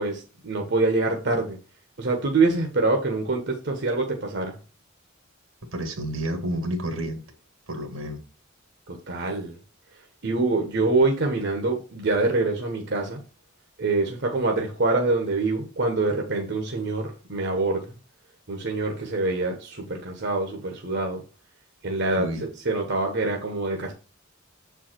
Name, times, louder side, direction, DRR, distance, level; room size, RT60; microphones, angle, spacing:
voice 1, 0.0-1.6 2.0-4.5 8.9-9.6 10.2-13.2 13.8-17.9 18.5-21.2 21.8-22.3 22.6-23.9, right 3 dB, 55° right, 1.2 m, -25 dB
voice 2, 5.7-7.2 7.7-8.2 22.2-22.5, right 1 dB, 85° right, 1.9 m, -30 dB
7.1 x 4.6 x 4.5 m
head